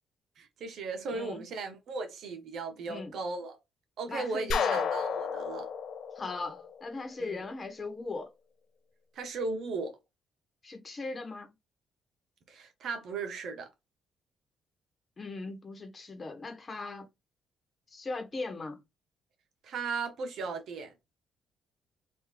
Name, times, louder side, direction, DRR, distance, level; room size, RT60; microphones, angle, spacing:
voice 1, 0.4-3.6 4.0-5.7 7.2-7.4 9.1-10.0 12.5-13.7 19.6-20.9, right 4 dB, 70° right, 1.0 m, -36 dB
voice 2, 4.1-4.8 6.2-8.3 10.6-11.5 15.2-17.1 17.9-18.8, left 3 dB, 35° left, 1.2 m, -39 dB
sound 1, 4.5-7.3, left 6 dB, 70° left, 0.6 m, -32 dB
3.7 x 2.7 x 3.1 m
cardioid pair, 90°, 0 cm